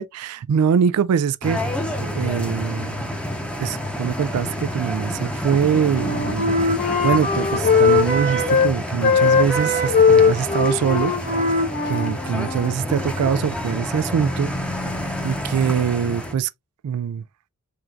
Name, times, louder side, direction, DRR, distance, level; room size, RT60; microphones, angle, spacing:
voice 1, 0.0-1.6 2.0-3.1 3.6-11.1 11.8-14.5 15.2-16.5 16.8-17.2, right 7 dB, 90° right, 0.3 m, -23 dB
sound 1, 1.4-16.3, left 1 dB, 5° left, 0.8 m, -29 dB
Wind instrument woodwind instrument, 5.6-8.7 9.0-12.8, left 4 dB, 35° left, 1.5 m, -20 dB
4.4 x 3.7 x 2.4 m
head